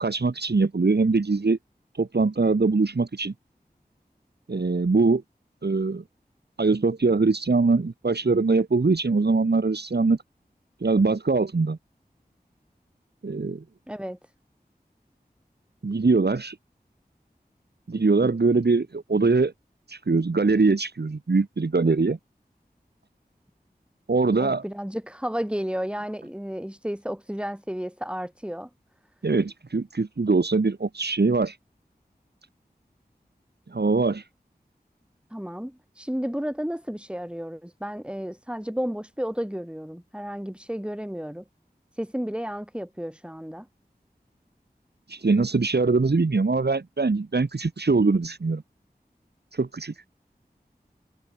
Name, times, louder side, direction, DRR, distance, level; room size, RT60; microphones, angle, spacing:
voice 1, 0.0-1.6 2.0-3.3 4.5-5.2 5.6-6.0 6.6-10.2 10.8-11.8 13.2-13.6 15.8-16.6 17.9-19.5 19.9-22.2 24.1-24.6 29.2-31.6 33.7-34.3 45.1-48.6 49.5-50.0, right 3 dB, 85° right, 2.4 m, -22 dB
voice 2, 13.9-14.2 24.4-28.7 35.3-41.4 41.9-43.7, equal, 5° right, 6.5 m, -32 dB
wide cardioid pair, 55°, 17 cm